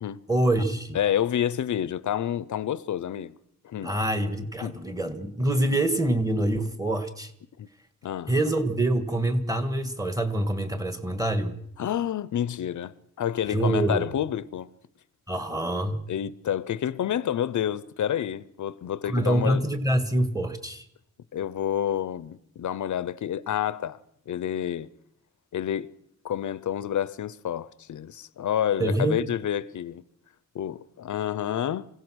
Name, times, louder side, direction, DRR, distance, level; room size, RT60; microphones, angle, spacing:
voice 1, 0.3-1.0 3.8-7.3 8.3-11.6 13.5-14.0 15.3-16.0 19.0-20.8 28.8-29.2, right 1 dB, 10° right, 1.7 m, -25 dB
voice 2, 0.9-3.4 3.6-3.9 4.6-4.8 7.6-7.7 8.0-8.3 11.8-14.7 16.1-19.6 21.3-24.0 24.3-24.9 25.5-25.9 26.2-30.0 30.5-31.9, left 10 dB, 85° left, 0.7 m, -29 dB
25.0 x 16.5 x 6.3 m
wide cardioid pair, 175°, 29 cm